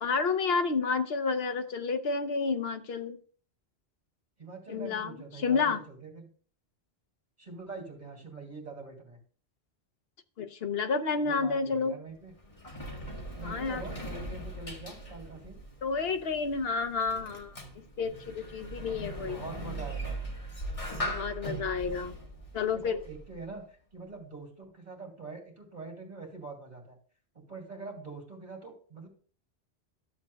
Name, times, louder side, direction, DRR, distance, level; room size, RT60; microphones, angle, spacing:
voice 1, 0.0-3.2 4.7-5.1 5.4-5.8 10.4-11.9 13.4-13.8 15.8-17.6 18.0-19.4 21.1-22.1 22.5-23.0, left 5 dB, 65° left, 9 dB, 1.0 m, -30 dB
voice 2, 4.4-6.3 7.4-9.2 11.2-12.3 13.3-15.6 19.2-20.2 22.7-27.0 27.3-29.1, right 3 dB, 40° right, 1 dB, 2.6 m, -44 dB
Sliding door, 12.1-23.5, right 1 dB, 30° left, 1.6 m, -40 dB
12.5 x 7.4 x 2.2 m, 0.43 s
omnidirectional pair, 1.1 m